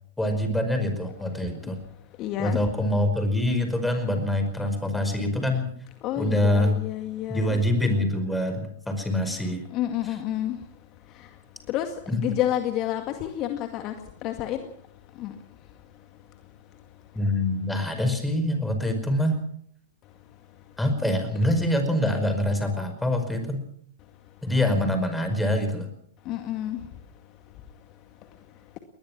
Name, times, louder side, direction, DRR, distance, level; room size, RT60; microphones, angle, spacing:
voice 1, 0.2-1.8 2.4-5.7 6.2-6.8 7.3-9.6 10.0-10.1 12.1-12.2 17.1-19.4 20.8-23.6 24.4-25.9, left 1 dB, 5° left, 5.1 m, -25 dB
voice 2, 2.2-2.6 6.0-7.6 9.7-10.6 11.7-11.9 12.1-13.9 14.2-14.6 15.2-15.3 26.3-26.8, left 12 dB, 35° left, 2.0 m, -29 dB
21.5 x 20.5 x 6.1 m
hypercardioid pair, 105°, 0 cm